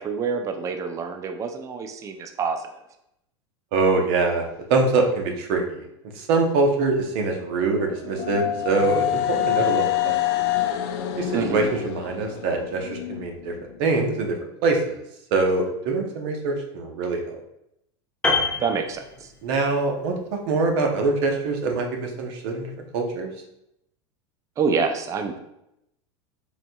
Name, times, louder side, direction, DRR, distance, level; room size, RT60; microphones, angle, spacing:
voice 1, 0.0-2.6 11.3-11.7 18.6-19.0 24.6-25.4, right 5 dB, 20° right, 6 dB, 0.3 m, -26 dB
voice 2, 3.7-5.8 6.2-10.1 11.2-13.5 13.8-15.0 15.3-17.2 19.4-23.3, right 3 dB, 60° right, 2 dB, 0.7 m, -24 dB
sound 1, 7.4-13.3, left 13 dB, 60° left, 0.4 m, -26 dB
Piano, 18.2-19.7 20.0-20.2, left 3 dB, 5° left, 0.8 m, -26 dB
4.1 x 2.6 x 2.2 m, 0.81 s
hypercardioid pair, 115°, 15 cm